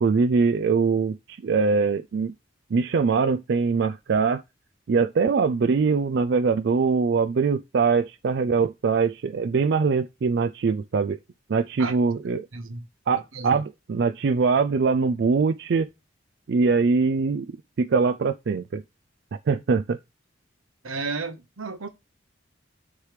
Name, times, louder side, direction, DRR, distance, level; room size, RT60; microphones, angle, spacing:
voice 1, 0.0-2.3 2.7-4.4 4.9-11.2 11.5-12.5 13.1-15.9 16.5-17.5 17.8-18.8 19.5-20.0, right 5 dB, 55° right, 0.3 m, -22 dB
voice 2, 12.5-12.8 13.1-13.6 20.8-21.9, right 4 dB, 85° right, 1.0 m, -33 dB
9.6 x 3.2 x 4.9 m
head